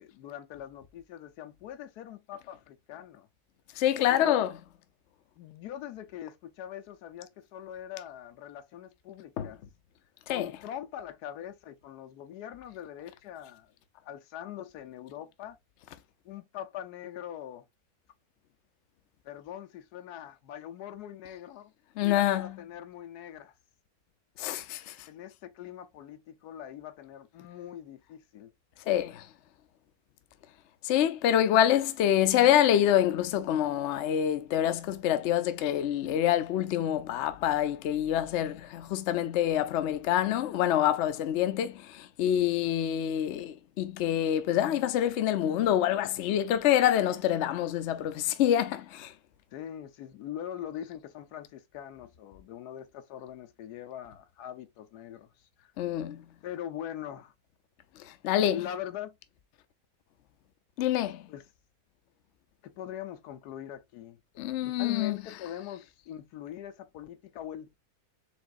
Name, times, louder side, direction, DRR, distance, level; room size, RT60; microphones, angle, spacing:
voice 1, 0.0-3.3 4.1-4.4 5.4-9.6 10.3-13.7 14.0-15.6 16.2-17.6 19.2-21.7 22.0-23.5 25.1-28.5 49.5-55.7 56.4-57.3 58.5-59.2 61.3-61.4 62.6-64.2 64.6-67.8, left 10 dB, 90° left, 1.3 m, -42 dB
voice 2, 3.8-4.5 9.4-9.5 10.3-10.5 22.0-22.6 24.4-25.1 28.9-29.3 30.8-49.1 55.8-56.2 58.0-58.6 60.8-61.3 64.4-65.2, left 11 dB, 60° left, 0.8 m, -26 dB
5.0 x 3.5 x 2.5 m
omnidirectional pair, 1.6 m